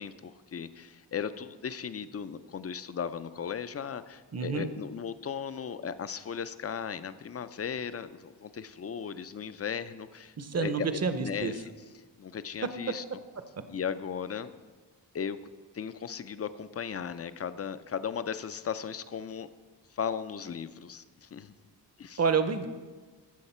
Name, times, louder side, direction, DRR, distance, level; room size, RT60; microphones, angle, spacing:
voice 1, 0.0-11.7 12.2-13.0 13.7-14.5 15.1-15.4 15.7-19.5 19.9-21.5 22.0-22.2, left 7 dB, 35° left, 13 dB, 0.4 m, -36 dB
voice 2, 4.3-4.7 10.4-11.5 22.2-22.7, right 5 dB, 35° right, 10 dB, 0.7 m, -28 dB
15.0 x 6.4 x 4.3 m, 1.4 s
wide cardioid pair, 115°, 45 cm